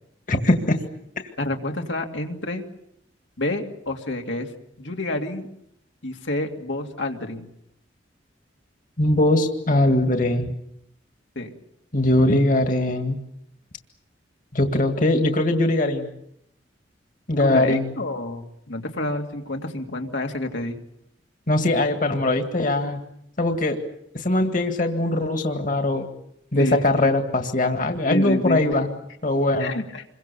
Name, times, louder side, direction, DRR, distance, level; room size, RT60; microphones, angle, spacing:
voice 1, 0.3-0.8 9.0-10.5 11.9-13.2 14.5-16.1 17.3-17.9 21.5-23.0 23.4-23.8 24.1-26.1 26.5-28.9 29.2-29.8, left 1 dB, 45° left, 5 dB, 2.1 m, -21 dB
voice 2, 1.4-2.6 3.4-4.5 4.8-5.5 6.0-7.5 11.4-11.5 17.4-20.8 26.6-27.1 28.1-28.6 29.6-30.0, left 1 dB, 85° left, 2 dB, 2.7 m, -29 dB
27.5 x 23.0 x 7.0 m, 0.76 s
head